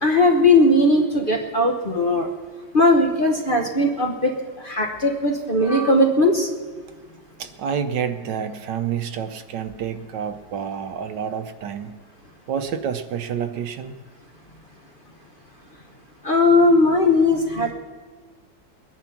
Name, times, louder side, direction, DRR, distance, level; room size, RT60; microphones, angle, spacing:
voice 1, 0.0-2.3 2.7-6.5 16.2-17.7, left 2 dB, 35° left, 1 dB, 1.0 m, -18 dB
voice 2, 1.2-1.5 7.4-11.9 12.5-14.0, right 8 dB, 75° right, 9 dB, 1.4 m, -29 dB
21.0 x 10.5 x 5.9 m, 1.5 s
omnidirectional pair, 2.0 m